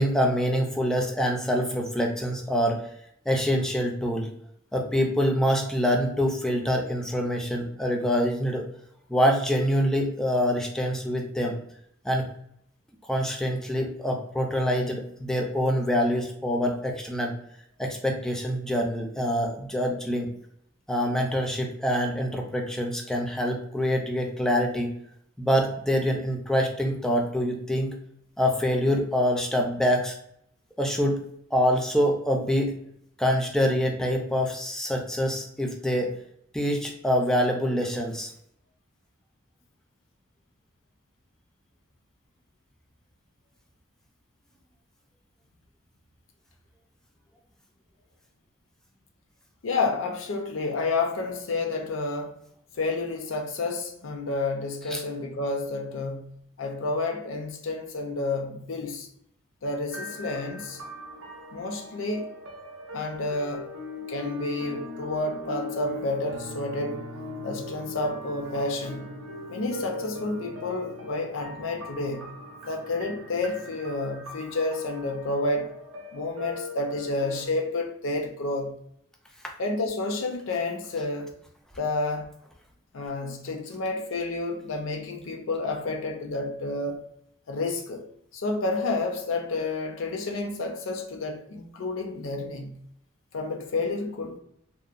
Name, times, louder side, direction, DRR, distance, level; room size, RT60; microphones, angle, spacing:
voice 1, 0.0-2.8 3.3-4.3 4.7-8.6 9.1-11.5 12.0-12.3 13.1-17.3 17.8-20.3 20.9-24.9 25.4-27.9 28.4-30.1 30.8-31.2 31.5-32.8 33.2-36.1 36.5-38.3 54.9-55.0 79.4-79.5, equal, 5° left, 0.3 m, -25 dB
voice 2, 49.6-52.4 52.7-59.1 59.6-60.8 61.5-62.4 62.9-63.8 64.1-67.1 67.4-69.2 69.5-72.3 72.7-75.7 76.1-78.8 79.6-81.4 81.8-82.3 82.9-87.1 87.5-88.1 88.3-92.8 93.3-94.4, left 2 dB, 70° left, 0.5 m, -30 dB
sound 1, 59.9-77.5, left 1 dB, 75° right, 0.5 m, -40 dB
2.8 x 2.1 x 2.4 m
head